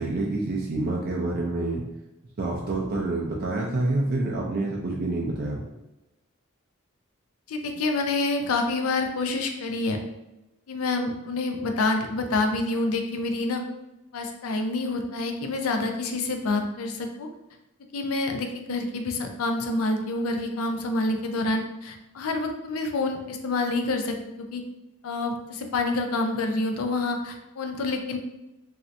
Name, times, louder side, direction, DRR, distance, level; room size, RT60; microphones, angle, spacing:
voice 1, 0.0-1.8 2.4-5.6, right 2 dB, 45° right, -2 dB, 0.4 m, -27 dB
voice 2, 7.5-10.0 10.7-13.6 14.1-17.3 17.9-24.2 24.5-24.6 25.0-28.2, left 2 dB, 90° left, 4 dB, 0.4 m, -27 dB
3.1 x 2.7 x 2.5 m, 0.95 s
head